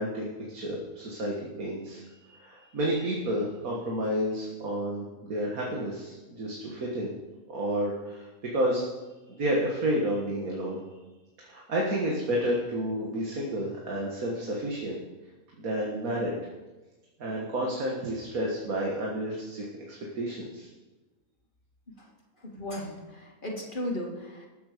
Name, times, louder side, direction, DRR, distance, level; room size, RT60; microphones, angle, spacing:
voice 1, 0.0-7.1 7.5-8.3 8.5-8.8 9.4-10.8 11.4-15.0 15.6-16.3 17.2-20.7, equal, 80° right, -2 dB, 2.1 m, -30 dB
voice 2, 22.4-24.5, left 1 dB, 35° left, -1 dB, 2.2 m, -35 dB
18.5 x 7.8 x 5.1 m, 1.2 s
omnidirectional pair, 1.5 m